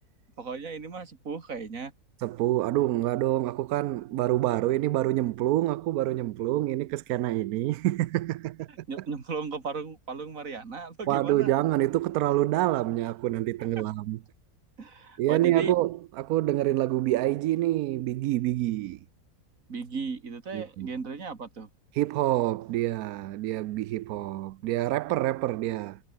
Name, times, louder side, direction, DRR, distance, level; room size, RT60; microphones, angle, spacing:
voice 1, 0.4-1.9 8.9-11.5 13.8-13.9 14.8-15.7 19.7-21.7, right 5 dB, 65° right, 2.7 m, -36 dB
voice 2, 2.2-8.7 11.1-14.2 15.2-19.0 20.5-20.9 21.9-26.0, right 15 dB, 85° right, 1.1 m, -27 dB
omnidirectional pair, 1.5 m